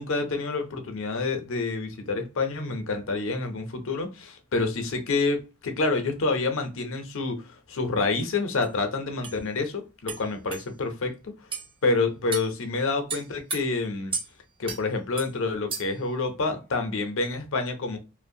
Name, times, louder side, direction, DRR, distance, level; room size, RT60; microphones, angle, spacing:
voice 1, 0.0-11.3 11.8-14.1 14.6-18.0, left 3 dB, 65° left, 6 dB, 0.6 m, -28 dB
sound 1, 8.6-8.7 9.2-9.4 10.1-10.2 10.5-10.6 11.5-11.7 12.3-12.5 13.1-13.6 14.1-14.3 14.7-14.8 15.2-15.3 15.7-16.0, right 4 dB, 25° right, 0.6 m, -33 dB
2.5 x 2.1 x 2.6 m, 0.30 s
head